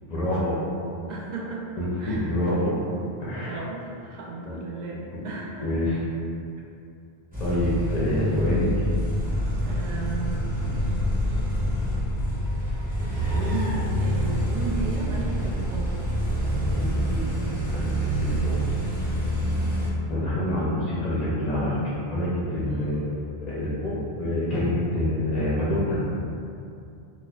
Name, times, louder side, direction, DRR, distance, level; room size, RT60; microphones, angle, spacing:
voice 1, 0.1-0.6 1.8-2.7 3.2-3.6 4.5-4.6 5.2-5.3 5.6-6.0 7.4-8.6 10.7-10.8 16.7-17.3 17.7-17.9 18.2-18.5 20.1-26.0, left 1 dB, 50° left, -7 dB, 0.6 m, -27 dB
voice 2, 1.1-1.7 2.0-2.4 3.4-6.1 9.7-10.4 13.3-15.9 22.7-23.0, right 3 dB, 55° right, -3 dB, 0.6 m, -35 dB
sound 1, 7.3-19.9, equal, 10° right, 0.6 m, -26 dB
4.1 x 2.4 x 2.2 m, 2.6 s
omnidirectional pair, 1.0 m